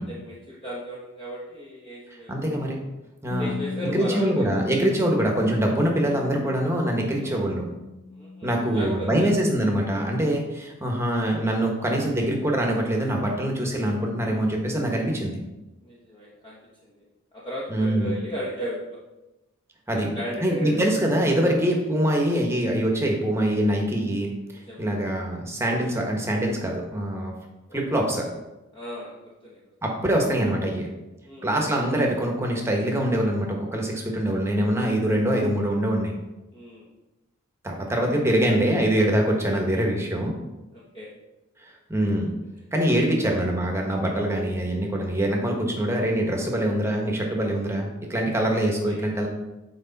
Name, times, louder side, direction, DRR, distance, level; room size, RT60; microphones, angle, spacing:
voice 1, 0.0-2.3 3.4-4.6 7.1-7.4 8.2-9.3 15.8-17.0 17.3-18.8 19.9-21.0 21.5-21.6 24.5-25.2 27.7-28.0 28.7-29.6 31.2-31.5 36.5-36.9 40.7-41.1 48.5-49.1, equal, 20° left, -6 dB, 1.1 m, -36 dB
voice 2, 2.3-2.8 3.2-3.5 3.8-7.7 8.4-15.4 17.7-18.1 19.9-20.1 20.4-24.3 24.8-27.3 27.7-28.3 29.8-30.9 31.4-36.1 37.6-40.3 41.9-42.3 42.7-49.3, right 1 dB, 10° right, 0 dB, 1.2 m, -24 dB
Bass guitar, 3.3-9.6, left 3 dB, 70° left, 0.9 m, -37 dB
8.1 x 4.9 x 4.1 m, 1.0 s
head